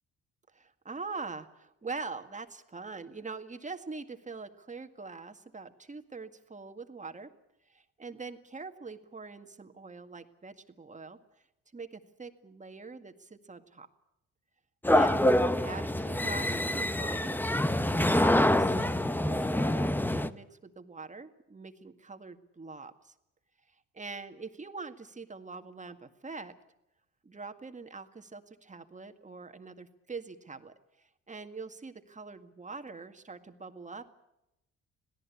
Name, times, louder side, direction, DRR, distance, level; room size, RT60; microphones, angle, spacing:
voice 1, 0.5-7.3 7.7-11.2 11.7-13.9 14.9-15.2 15.6-17.4 18.0-23.1 24.0-26.5 27.2-34.1, right 4 dB, 25° right, 8 dB, 1.9 m, -43 dB
sound 1, 14.8-20.3, left 1 dB, 5° left, 0.9 m, -26 dB
26.0 x 17.5 x 8.5 m, 0.88 s
cardioid pair, 90°, 30 cm